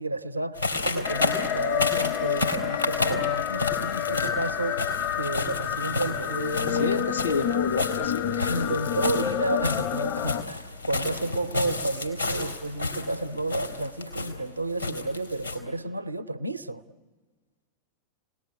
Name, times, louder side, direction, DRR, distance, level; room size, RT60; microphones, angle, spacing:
voice 1, 0.0-7.0 7.3-7.5 8.5-16.8, right 2 dB, 85° right, 0.7 m, -31 dB
sound 1, 0.5-15.6, left 3 dB, 90° left, 3.4 m, -31 dB
sound 2, 1.0-10.4, left 10 dB, 45° left, 0.7 m, -29 dB
voice 2, 6.7-8.6, left 5 dB, 75° left, 0.8 m, -30 dB
29.5 x 19.0 x 10.0 m
figure-of-eight pair, 90°, 0 cm